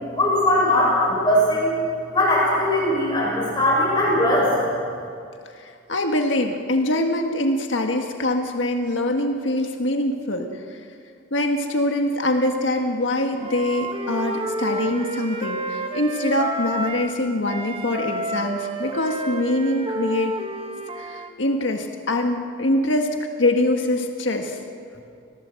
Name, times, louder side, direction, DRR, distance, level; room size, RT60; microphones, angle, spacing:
voice 1, 0.1-1.7 2.1-4.6, left 1 dB, 25° left, -4 dB, 6.8 m, -20 dB
voice 2, 5.5-10.8 11.3-20.3 21.0-24.6, left 1 dB, 80° left, 4 dB, 1.7 m, -24 dB
Wind instrument woodwind instrument, 13.4-17.2 17.5-21.3, right 1 dB, 30° right, 1.4 m, -30 dB
26.0 x 17.5 x 7.7 m, 2.4 s
head